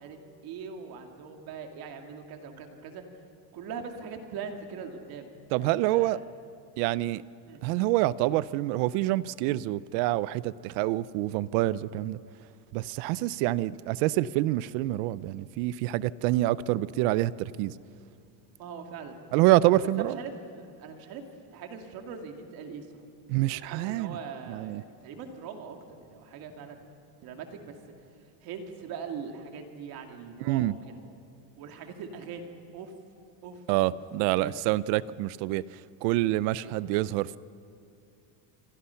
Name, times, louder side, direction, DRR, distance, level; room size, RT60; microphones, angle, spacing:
voice 1, 0.0-3.0 3.5-5.3 5.6-6.2 7.5-7.6 18.6-19.2 19.6-21.2 21.5-23.0 23.4-26.8 27.2-27.8 28.4-31.0 31.6-32.5 32.7-32.9 33.4-33.6 33.9-34.0 34.4-34.5 36.6-36.7, right 6 dB, 50° right, 4 dB, 2.4 m, -41 dB
voice 2, 5.5-6.2 6.8-7.2 7.6-12.2 12.7-17.7 19.3-20.2 23.3-24.2 24.5-24.8 30.4-30.7 33.7-35.6 36.0-37.4, right 16 dB, 80° right, 18 dB, 0.7 m, -26 dB
28.0 x 24.0 x 5.8 m, 2.4 s
cardioid pair, 170°, 47 cm